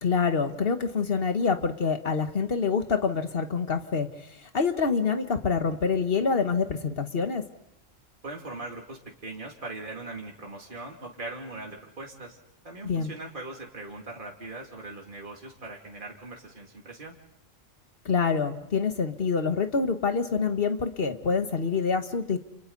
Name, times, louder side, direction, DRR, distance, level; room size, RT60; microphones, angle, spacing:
voice 1, 0.0-7.4 12.8-13.1 18.0-22.4, left 5 dB, 50° left, 7 dB, 1.6 m, -26 dB
voice 2, 8.2-12.4 12.6-17.1, right 2 dB, 40° right, 0 dB, 2.8 m, -40 dB
29.5 x 28.5 x 4.1 m, 0.81 s
omnidirectional pair, 1.3 m